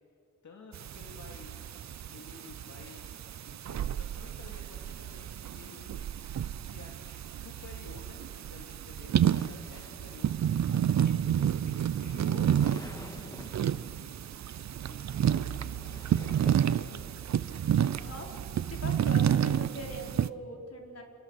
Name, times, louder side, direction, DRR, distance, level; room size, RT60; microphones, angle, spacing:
voice 1, 0.4-1.8 2.1-3.2 3.6-13.9 14.8-17.1 17.5-18.1, left 4 dB, 80° left, 1 dB, 2.5 m, -52 dB
sound 1, 0.7-20.3, right 9 dB, 70° right, 0.6 m, -30 dB
sound 2, 9.2-13.9 14.9-17.3, left 1 dB, 15° left, 1.9 m, -49 dB
voice 2, 18.0-18.3 18.7-21.0, equal, 55° left, 1 dB, 4.7 m, -42 dB
30.0 x 28.5 x 6.4 m, 2.8 s
wide cardioid pair, 130°, 29 cm